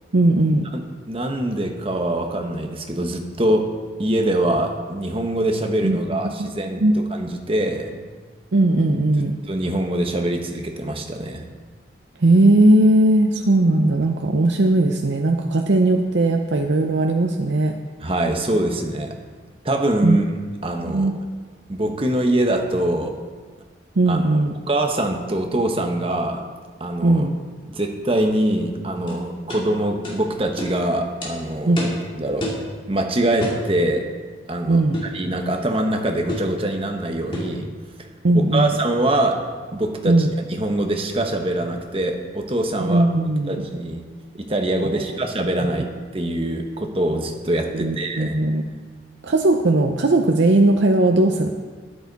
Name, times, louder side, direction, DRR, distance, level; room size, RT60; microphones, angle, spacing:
voice 1, 0.1-0.6 5.8-6.0 6.2-6.5 6.8-6.9 8.5-9.3 12.2-17.7 20.0-20.2 20.9-21.1 24.0-24.5 27.0-27.3 31.7-31.9 34.7-35.0 38.2-38.8 40.0-40.3 42.8-43.7 44.9-45.0 47.7-48.6 49.2-51.5, right 2 dB, 70° right, 3 dB, 0.6 m, -18 dB
voice 2, 0.7-3.7 4.0-6.8 7.1-7.9 9.2-11.4 18.0-19.1 19.6-20.2 20.6-21.1 21.7-23.1 24.1-24.4 24.7-26.4 26.8-27.3 27.7-31.9 32.1-32.5 32.9-34.0 34.5-37.7 38.3-39.4 39.7-40.3 40.6-43.0 43.5-44.0 44.3-45.9 46.1-48.4, right 1 dB, 30° right, 3 dB, 1.1 m, -23 dB
sound 1, 29.1-29.2 29.5-29.6 30.0-30.2 30.6-30.7 31.2-31.3 31.8-32.0 32.4-32.7 33.4-33.6 34.9-35.2 36.3-36.5 37.3-37.6, equal, 30° left, 2.6 m, -29 dB
12.5 x 10.5 x 4.1 m, 1.5 s
head